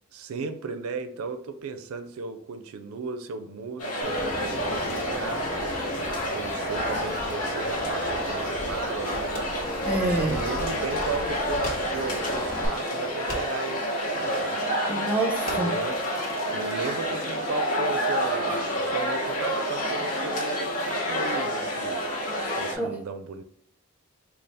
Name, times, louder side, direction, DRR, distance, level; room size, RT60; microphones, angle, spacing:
voice 1, 0.1-5.5 6.3-9.4 10.0-14.7 15.5-16.0 16.5-22.1 22.6-23.4, right 4 dB, 75° right, 0.4 m, -35 dB
sound 1, 3.8-22.8, equal, 75° left, 1.2 m, -29 dB
Bird vocalization bird call bird song, 4.0-12.7, left 1 dB, 10° left, 1.0 m, -36 dB
Fireworks, 9.3-12.1 12.4-12.5 12.8-12.9 13.3-13.7 14.3-14.5 14.9-15.1 15.5-17.5, left 1 dB, 40° left, 0.9 m, -43 dB
voice 2, 9.8-10.4 14.9-15.7 22.8-22.9, right 2 dB, 5° right, 0.5 m, -26 dB
4.0 x 2.3 x 3.4 m
head